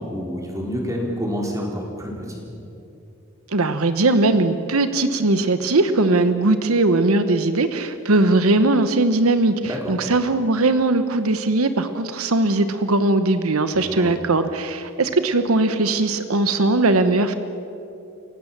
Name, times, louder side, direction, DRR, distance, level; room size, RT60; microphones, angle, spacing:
voice 1, 0.0-2.4 9.7-9.9 13.7-14.1, equal, 15° right, -1 dB, 4.4 m, -28 dB
voice 2, 3.5-17.3, right 2 dB, 85° right, 10 dB, 1.1 m, -19 dB
29.0 x 16.5 x 7.4 m, 2.8 s
head